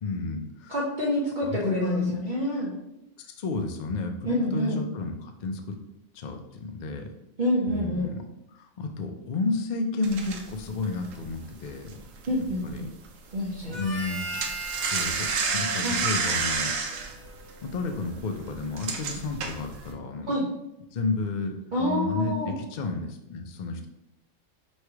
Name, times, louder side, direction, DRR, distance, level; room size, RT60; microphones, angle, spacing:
voice 1, 0.0-0.8 1.4-2.2 3.2-5.8 6.1-7.1 7.7-8.2 8.5-12.0 12.6-12.9 13.6-14.2 14.8-15.3 15.5-16.7 17.6-20.6 20.9-23.9, left 3 dB, 70° left, 4 dB, 0.4 m, -31 dB
voice 2, 0.7-2.7 4.3-4.8 7.4-8.1 12.3-12.9 13.3-13.7 15.8-16.0 20.3-20.5 21.7-22.5, left 1 dB, 45° right, -5 dB, 0.7 m, -27 dB
sound 1, 10.0-12.8 13.1-13.3 13.6-19.9, right 5 dB, 75° right, 1.0 m, -30 dB
Harmonica, 13.7-17.5, right 2 dB, 10° right, 1.3 m, -37 dB
3.1 x 3.1 x 4.6 m, 0.87 s
omnidirectional pair, 1.4 m